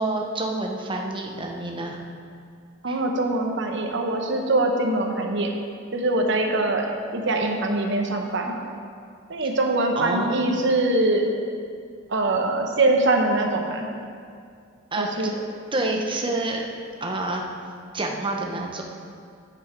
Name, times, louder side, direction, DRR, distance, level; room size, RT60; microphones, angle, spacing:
voice 1, 0.0-2.0 2.9-3.0 7.4-7.5 10.0-10.4 14.9-15.1 15.7-16.6 17.0-17.4 17.9-18.8, right 2 dB, 25° right, 0 dB, 1.0 m, -28 dB
voice 2, 2.8-5.5 5.9-8.6 9.3-11.3 12.1-13.9 15.0-15.3, right 2 dB, 65° right, 2 dB, 1.1 m, -23 dB
9.6 x 8.3 x 4.6 m, 2.3 s
head